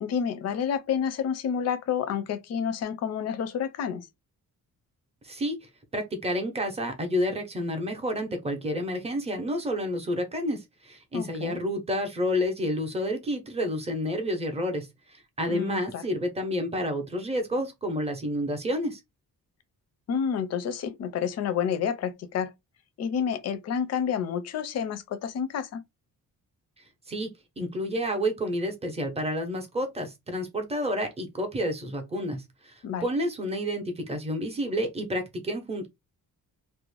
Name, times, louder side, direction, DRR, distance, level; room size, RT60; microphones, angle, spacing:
voice 1, 0.0-4.1 11.1-11.6 15.5-16.0 20.1-22.5 23.0-25.8 32.8-33.1, left 7 dB, 45° left, 0.4 m, -29 dB
voice 2, 5.2-19.0 27.1-27.3 27.6-35.9, equal, 15° right, 0.6 m, -30 dB
2.4 x 2.1 x 3.1 m
wide cardioid pair, 160°, 36 cm